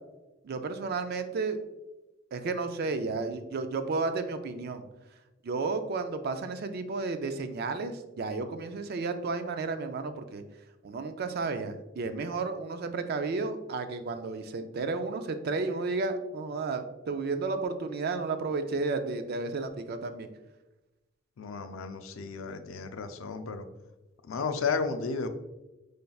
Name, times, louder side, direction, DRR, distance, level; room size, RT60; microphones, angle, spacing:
voice 1, 0.4-1.6 2.3-4.8 5.4-10.4 10.8-20.3, right 3 dB, 50° right, 8 dB, 0.4 m, -32 dB
voice 2, 21.4-23.6 24.2-25.3, left 5 dB, 85° left, 8 dB, 0.4 m, -33 dB
5.4 x 3.3 x 2.3 m, 1.0 s
head